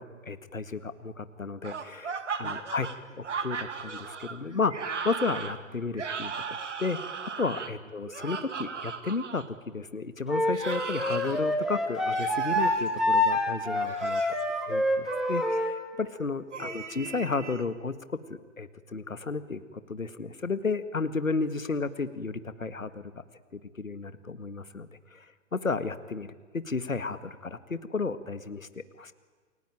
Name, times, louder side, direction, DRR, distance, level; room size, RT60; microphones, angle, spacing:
voice 1, 0.0-2.9 3.2-7.0 7.4-14.2 14.7-19.6 19.9-23.1 23.5-25.3 25.5-26.3 26.5-29.1, left 4 dB, 75° left, 13 dB, 1.9 m, -33 dB
sound 1, 1.6-9.5 10.5-11.4 12.1-12.9 13.7-14.4 15.1-15.6 16.5-17.6, right 5 dB, 60° right, 2.2 m, -37 dB
Wind instrument woodwind instrument, 10.3-15.7, left 1 dB, ahead, 2.6 m, -27 dB
29.0 x 22.0 x 9.2 m, 1.5 s
figure-of-eight pair, 120°, 40 cm